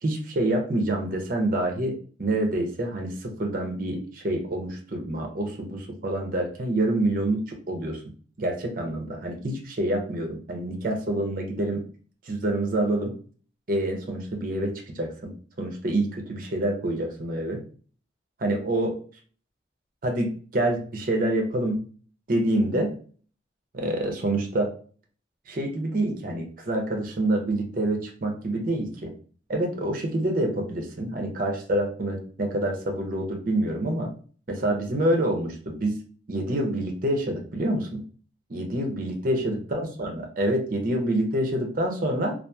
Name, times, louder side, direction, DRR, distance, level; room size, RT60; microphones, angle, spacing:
voice 1, 0.0-8.0 8.4-11.8 12.3-13.1 13.7-15.3 15.6-17.6 18.4-19.0 20.0-21.8 22.3-22.9 23.7-24.7 25.5-29.1 29.5-34.1 34.5-36.0 36.3-38.0 38.5-42.3, right 1 dB, 50° right, 2 dB, 0.5 m, -27 dB
2.8 x 2.3 x 2.2 m, 0.43 s
head